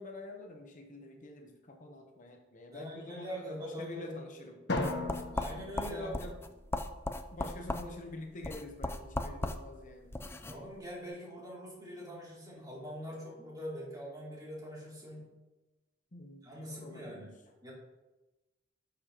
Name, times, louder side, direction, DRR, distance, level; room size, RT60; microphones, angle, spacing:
voice 1, 0.0-4.7 5.9-6.4 7.3-10.1 16.1-17.3, left 2 dB, 45° left, 3 dB, 0.9 m, -47 dB
voice 2, 2.7-4.2 5.3-6.2 10.4-15.3 16.4-17.3 17.6-17.7, equal, 20° right, -5 dB, 2.8 m, -43 dB
Drum, 4.7-7.0, left 2 dB, 65° left, 1.2 m, -37 dB
sound 1, 4.7-10.6, left 2 dB, 15° left, 0.5 m, -38 dB
11.5 x 6.9 x 2.9 m, 1.1 s
head